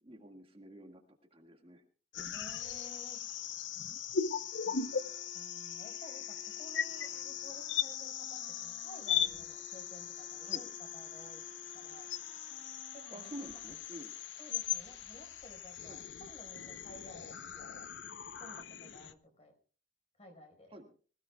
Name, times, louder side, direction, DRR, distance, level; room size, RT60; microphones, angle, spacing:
voice 1, 0.0-1.0 1.3-1.8 10.4-10.6 13.1-14.1 15.9-16.0 20.7-20.9, right 1 dB, 30° right, 3 dB, 1.9 m, -49 dB
sound 1, 2.1-19.1, left 8 dB, 85° left, 0.8 m, -39 dB
voice 2, 2.2-3.2 4.6-4.8 5.3-10.7 10.9-11.4 11.7-12.1 12.9-13.8 14.4-17.8 18.4-19.5 20.2-20.8, equal, 35° left, 4 dB, 4.8 m, -54 dB
sound 2, 4.3-13.6, equal, 75° right, 4.0 m, -57 dB
25.0 x 16.5 x 2.3 m, 0.39 s
head